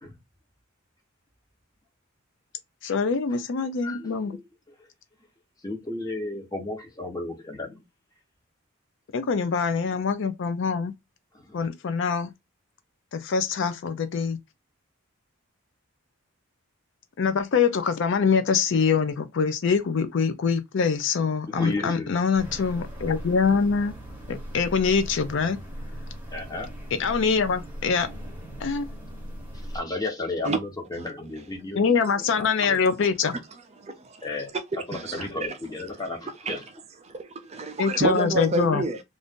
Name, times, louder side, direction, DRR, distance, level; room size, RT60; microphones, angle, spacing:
voice 1, 2.8-4.3 9.1-10.9 11.5-12.3 13.1-14.4 17.2-23.9 24.3-25.6 27.0-28.1 28.6-28.9 31.8-33.4 37.8-38.9, left 5 dB, 60° left, 0.4 m, -24 dB
voice 2, 3.8-4.4 4.7-4.9 5.6-7.8 11.3-11.7 21.5-22.1 26.3-26.7 29.7-31.8 32.3-32.8 34.2-34.5 34.9-36.6, left 2 dB, 15° left, 1.0 m, -33 dB
sound 1, 22.3-29.8, equal, 10° right, 0.9 m, -39 dB
voice 3, 33.8-34.3 34.7-35.2 35.5-35.6 36.5-36.6 37.0-39.0, right 2 dB, 30° right, 0.5 m, -29 dB
2.5 x 2.4 x 3.5 m
head